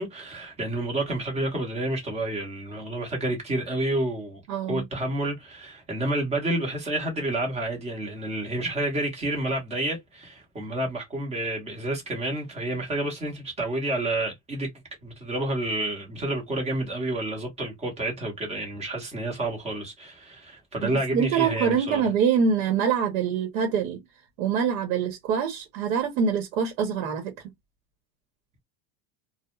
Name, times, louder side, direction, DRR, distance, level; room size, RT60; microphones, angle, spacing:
voice 1, 0.0-4.4 4.7-14.7 15.0-22.1, right 1 dB, 15° right, 0.9 m, -29 dB
voice 2, 4.5-4.8 20.8-24.0 24.4-27.3, right 6 dB, 80° right, 0.9 m, -25 dB
2.3 x 2.1 x 3.0 m
cardioid pair, 165°, 41 cm